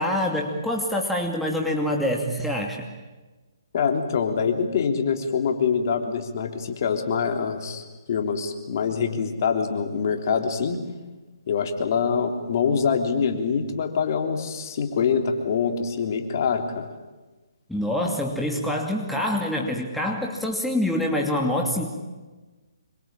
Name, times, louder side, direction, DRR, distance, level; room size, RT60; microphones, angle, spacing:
voice 1, 0.0-2.9 17.7-21.9, left 1 dB, ahead, 0 dB, 2.6 m, -25 dB
voice 2, 3.7-10.8 11.5-16.9, left 6 dB, 50° left, 5 dB, 3.4 m, -25 dB
26.5 x 24.0 x 9.0 m, 1.2 s
hypercardioid pair, 145°, 2 cm